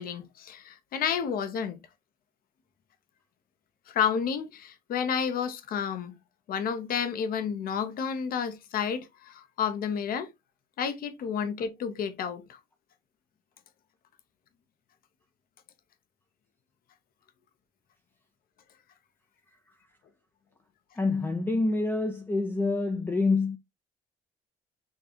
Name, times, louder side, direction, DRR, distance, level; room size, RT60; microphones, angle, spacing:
voice 1, 0.0-1.8 3.9-6.2 6.5-10.3 10.8-12.6, left 7 dB, 60° left, 0.8 m, -31 dB
voice 2, 20.9-23.6, left 3 dB, 10° left, 0.6 m, -26 dB
6.4 x 2.3 x 2.9 m
cardioid pair, 110°, 17 cm